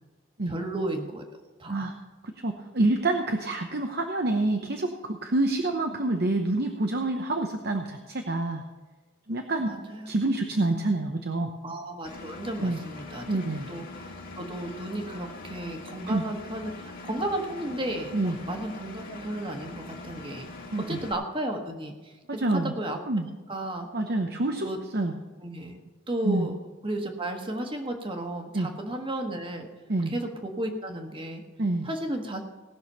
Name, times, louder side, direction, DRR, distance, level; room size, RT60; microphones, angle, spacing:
voice 1, 0.5-1.2 1.6-1.9 9.6-10.1 11.6-13.2 13.7-14.1 14.4-20.5 20.9-23.0 23.5-23.9 24.6-24.8 25.4-25.8 26.1-26.6 26.8-29.7 30.1-31.4 31.8-32.5, right 1 dB, 25° right, 4 dB, 1.5 m, -33 dB
voice 2, 2.2-8.6 9.3-9.7 10.1-11.5 12.6-12.8 13.3-13.7 16.1-16.2 18.1-18.4 20.7-21.0 22.3-22.7 23.1-23.3 23.9-24.7 24.9-25.2 26.2-26.5 28.5-28.7 29.9-30.1 31.6-31.9, right 2 dB, 55° right, 4 dB, 0.9 m, -27 dB
Engine, 12.0-21.1, left 3 dB, 50° left, 2.2 m, -42 dB
18.5 x 6.3 x 5.6 m, 1.2 s
head